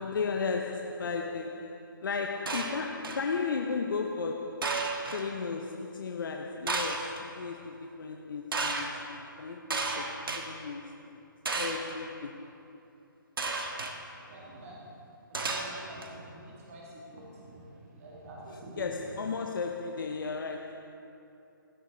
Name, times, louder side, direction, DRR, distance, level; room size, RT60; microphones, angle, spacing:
voice 1, 0.0-11.2 11.6-12.6 18.8-20.9, left 4 dB, 70° left, 0.6 m, -35 dB
sound 1, 2.5-3.3 4.6-5.2 6.7-7.2 8.5-8.9 9.7-10.4 11.4-11.9 13.4-13.9 15.3-16.1, right 3 dB, 75° right, 1.3 m, -32 dB
voice 2, 14.3-14.8 15.3-19.1, right 1 dB, 40° right, 2.2 m, -47 dB
16.0 x 8.1 x 3.8 m
hypercardioid pair, 155°, 12 cm